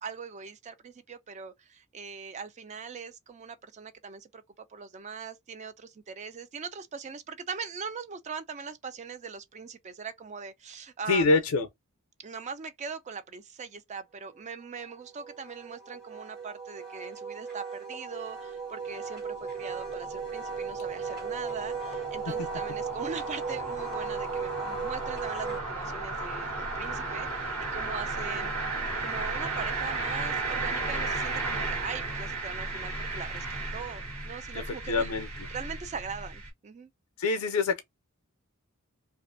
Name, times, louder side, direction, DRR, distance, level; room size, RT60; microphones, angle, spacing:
voice 1, 0.0-11.4 12.2-28.7 29.0-35.1 35.5-36.9, right 5 dB, 30° right, 0.3 m, -41 dB
voice 2, 11.1-11.7 34.5-35.3 37.2-37.8, left 3 dB, 75° left, 0.5 m, -25 dB
Wind instrument woodwind instrument, 14.6-25.6, right 5 dB, 50° right, 1.3 m, -37 dB
sound 1, 18.9-36.5, right 3 dB, 85° right, 1.4 m, -35 dB
2.4 x 2.4 x 2.4 m
head